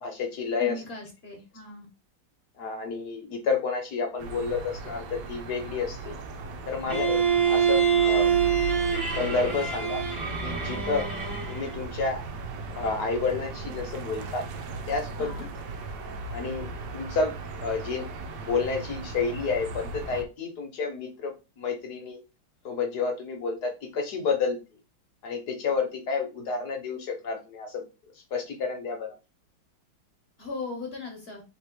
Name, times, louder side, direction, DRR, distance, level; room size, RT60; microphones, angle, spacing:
voice 1, 0.0-0.7 2.6-6.2 6.7-8.3 9.2-10.0 10.4-11.1 11.5-12.2 12.7-14.5 14.9-15.4 16.3-17.3 17.6-18.1 18.4-22.2 22.6-24.6 25.2-27.8 28.3-29.1, left 4 dB, 60° left, 4 dB, 1.3 m, -30 dB
voice 2, 0.6-1.9 15.2-15.5 30.4-31.4, left 3 dB, 35° left, 1 dB, 1.2 m, -38 dB
sound 1, 4.2-20.2, right 3 dB, 70° right, 1.1 m, -37 dB
Bowed string instrument, 6.9-11.8, right 7 dB, 30° right, 1.2 m, -25 dB
3.3 x 3.1 x 4.5 m, 0.29 s
omnidirectional pair, 2.2 m